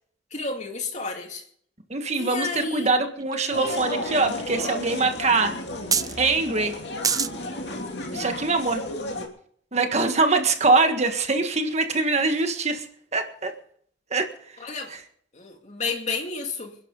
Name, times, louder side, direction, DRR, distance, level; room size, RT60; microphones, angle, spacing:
voice 1, 0.3-1.4 2.1-2.9 14.6-14.9 15.3-16.8, left 3 dB, 40° left, 3 dB, 2.5 m, -31 dB
voice 2, 1.9-5.6 6.2-6.8 8.1-8.8 9.7-12.9 13.1-13.5 14.1-14.3, right 3 dB, 40° right, 6 dB, 1.6 m, -23 dB
sound 1, 2.7-2.8 3.2-4.2 4.7-4.8 4.9-5.0 5.9-6.2 7.0-7.3 8.0-8.1, right 6 dB, 20° right, 0.5 m, -25 dB
sound 2, 3.5-9.3, left 2 dB, 65° left, 2.7 m, -33 dB
27.0 x 11.0 x 3.9 m, 0.62 s
head